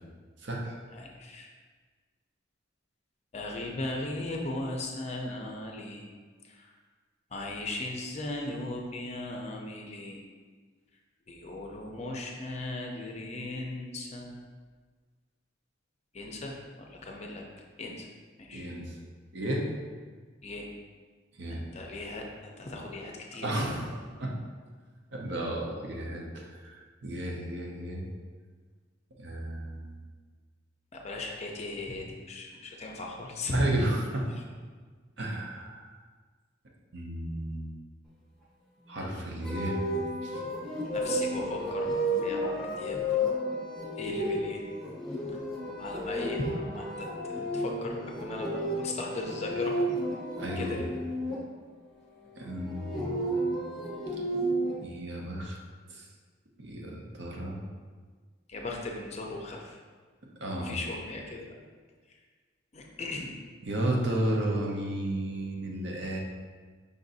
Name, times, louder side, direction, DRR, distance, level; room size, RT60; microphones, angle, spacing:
voice 1, 0.4-0.8 18.5-19.0 19.3-19.7 21.4-21.6 23.4-24.3 25.1-26.7 27.0-28.0 29.2-29.9 33.5-34.3 35.2-35.9 36.9-37.7 38.9-39.8 40.2-40.4 50.4-50.8 52.4-53.2 54.8-55.6 55.9-56.0 56.6-57.6 60.4-60.8 63.6-66.2, right 1 dB, 65° right, -1 dB, 0.8 m, -33 dB
voice 2, 0.9-1.5 3.3-6.1 6.4-6.7 7.3-10.2 11.3-14.3 16.1-17.4 17.8-18.1 18.4-18.7 20.4-20.7 21.5-23.5 24.1-24.2 30.9-33.6 34.3-34.4 40.7-41.9 42.2-43.0 44.0-44.6 45.3-45.4 45.8-49.8 50.6-50.9 58.5-59.8 60.6-61.5 62.7-63.3, left 2 dB, 35° left, 0 dB, 0.5 m, -37 dB
sound 1, 39.4-51.4 52.5-54.7, equal, ahead, 1.1 m, -32 dB
5.2 x 2.6 x 4.0 m, 1.5 s
head